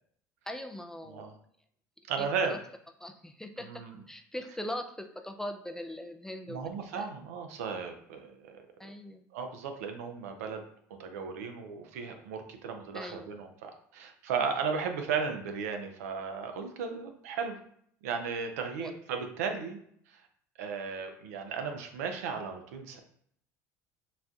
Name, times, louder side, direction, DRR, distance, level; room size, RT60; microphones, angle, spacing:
voice 1, 0.5-1.3 2.2-2.6 3.0-6.7 6.9-7.1 8.8-9.2 12.9-13.3 18.8-18.9, left 1 dB, 5° left, 6 dB, 0.3 m, -40 dB
voice 2, 2.1-2.6 3.6-4.0 6.5-8.6 9.3-10.6 11.0-17.6 18.0-19.8 20.1-20.2 20.6-23.0, right 5 dB, 80° right, 5 dB, 0.4 m, -35 dB
4.0 x 2.2 x 2.4 m, 0.65 s
hypercardioid pair, 75°, 8 cm